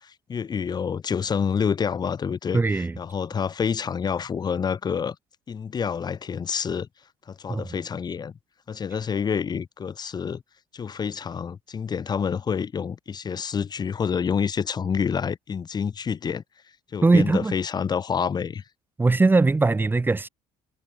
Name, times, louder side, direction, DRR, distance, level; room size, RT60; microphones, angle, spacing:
voice 1, 0.0-5.2 5.5-6.9 7.3-8.3 8.7-10.4 10.7-16.4 16.9-18.6, left 6 dB, 30° left, 2.2 m, -28 dB
voice 2, 2.5-2.9 7.5-7.7 17.0-17.5 19.0-20.3, right 3 dB, 15° right, 2.2 m, -20 dB
cardioid pair, 130°, 13 cm